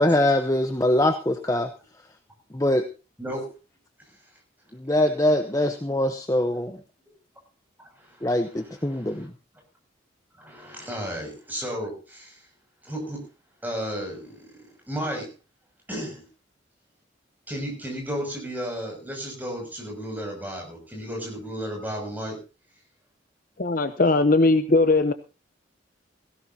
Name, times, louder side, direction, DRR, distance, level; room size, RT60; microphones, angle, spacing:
voice 1, 0.0-1.7 2.5-2.9 4.7-6.8 8.2-9.3, left 1 dB, 15° left, 7 dB, 0.9 m, -23 dB
voice 2, 3.2-3.6 4.0-4.4 7.8-9.3 10.4-12.5 12.8-13.3 13.6-15.3 15.9-16.3 17.5-22.4, equal, 10° right, 1 dB, 6.6 m, -34 dB
voice 3, 23.6-25.1, left 2 dB, 45° left, 10 dB, 0.8 m, -19 dB
18.5 x 16.5 x 2.8 m, 0.31 s
head